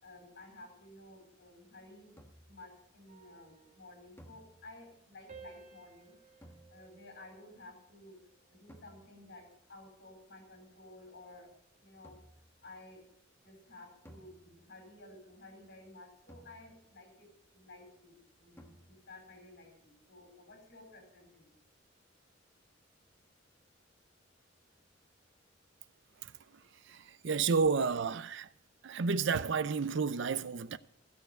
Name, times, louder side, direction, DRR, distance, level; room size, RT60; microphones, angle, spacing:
voice 1, 0.0-2.1 2.5-6.2 6.7-8.1 8.5-11.5 11.8-12.2 12.6-13.0 13.4-21.5, left 2 dB, 60° left, 4.3 m, -54 dB
sound 1, 2.2-2.7 4.2-5.0 6.4-7.2 8.7-9.4 12.0-12.6 14.1-14.9 16.3-17.1 18.6-19.3, equal, 15° left, 1.3 m, -58 dB
sound 2, 3.1-5.0 5.3-7.9 8.3-8.7, right 5 dB, 40° right, 2.2 m, -58 dB
voice 2, 26.9-28.5 28.8-30.8, right 5 dB, 65° right, 0.5 m, -31 dB
15.0 x 6.7 x 8.0 m
head